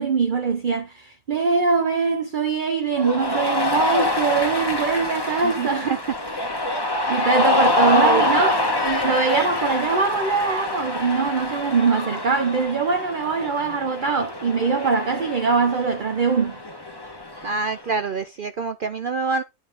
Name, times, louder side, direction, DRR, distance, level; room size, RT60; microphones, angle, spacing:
voice 1, 0.0-6.0 7.1-16.6, right 5 dB, 40° right, 0.8 m, -22 dB
Cheering, 3.0-17.8, left 2 dB, 15° left, 1.3 m, -25 dB
voice 2, 5.4-6.0 7.8-8.2 17.4-19.4, right 4 dB, 80° right, 0.4 m, -26 dB
10.5 x 5.5 x 3.6 m
omnidirectional pair, 1.8 m